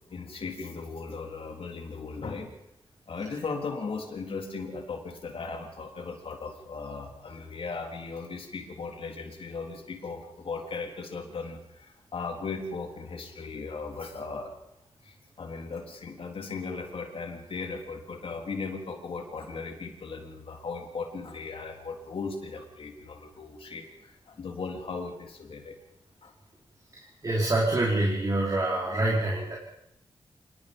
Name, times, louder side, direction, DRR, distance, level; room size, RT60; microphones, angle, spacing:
voice 1, 0.0-2.5 3.1-14.5 15.0-25.8 26.2-26.3, left 4 dB, 65° left, 3 dB, 3.6 m, -37 dB
voice 2, 27.2-29.6, right 2 dB, 35° right, -3 dB, 4.8 m, -26 dB
26.0 x 20.0 x 5.4 m, 0.83 s
cardioid pair, 80°, 10 cm